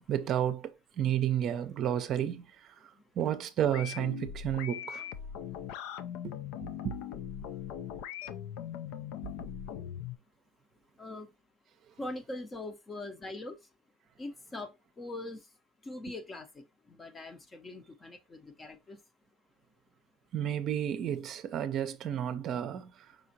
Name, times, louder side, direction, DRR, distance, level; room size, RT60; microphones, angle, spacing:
voice 1, 0.0-2.7 3.2-5.2 6.2-6.4 6.8-7.0 20.3-22.9, right 10 dB, 45° right, 0.6 m, -31 dB
sound 1, 3.7-10.2, left 9 dB, 65° left, 0.4 m, -40 dB
voice 2, 12.0-13.6 14.2-14.7 15.0-15.4 15.9-16.6 17.0-19.0, left 2 dB, 20° left, 0.7 m, -42 dB
5.1 x 3.6 x 2.8 m
supercardioid pair, 115°, 0 cm